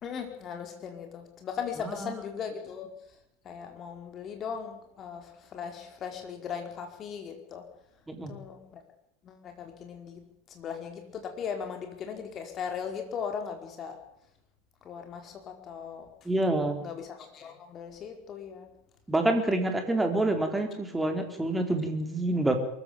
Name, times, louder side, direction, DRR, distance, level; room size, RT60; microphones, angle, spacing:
voice 1, 0.0-3.0 3.4-7.7 8.3-8.8 9.2-14.0 14.8-16.1 16.8-18.7, left 7 dB, 35° left, 5 dB, 4.9 m, -38 dB
voice 2, 8.1-8.4 16.3-16.8 19.1-22.5, right 2 dB, 10° right, 6 dB, 4.0 m, -27 dB
23.0 x 15.0 x 8.8 m, 0.78 s
figure-of-eight pair, 85°, 0 cm